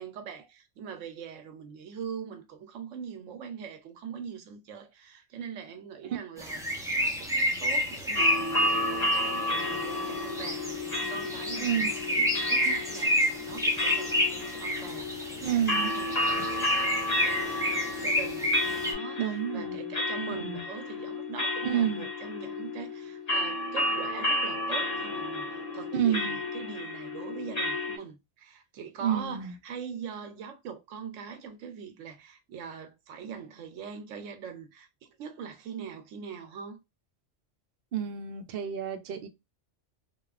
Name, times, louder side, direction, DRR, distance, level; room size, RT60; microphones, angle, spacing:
voice 1, 0.0-36.8, right 7 dB, 90° right, 1.0 m, -42 dB
sound 1, 6.4-18.9, equal, 5° right, 0.5 m, -30 dB
sound 2, 8.1-28.0, left 1 dB, 35° left, 1.0 m, -32 dB
voice 2, 11.6-11.9 15.4-15.9 19.2-19.9 20.3-20.6 21.6-22.1 25.9-26.4 29.0-29.6 37.9-39.3, right 9 dB, 60° right, 0.7 m, -29 dB
2.9 x 2.3 x 2.4 m
omnidirectional pair, 1.3 m